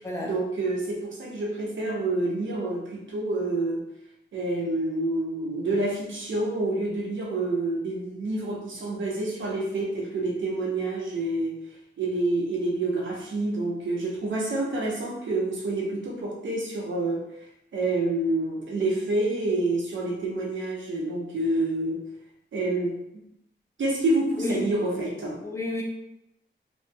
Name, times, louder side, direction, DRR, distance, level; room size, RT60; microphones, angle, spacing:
voice 1, 0.2-3.8 4.3-11.6 12.0-17.3 17.7-22.1 22.5-23.0 23.8-25.4, right 2 dB, 75° right, -3 dB, 0.7 m, -28 dB
voice 2, 25.4-25.8, left 2 dB, 15° left, -3 dB, 0.5 m, -30 dB
2.8 x 2.2 x 2.7 m, 0.82 s
wide cardioid pair, 165°, 20 cm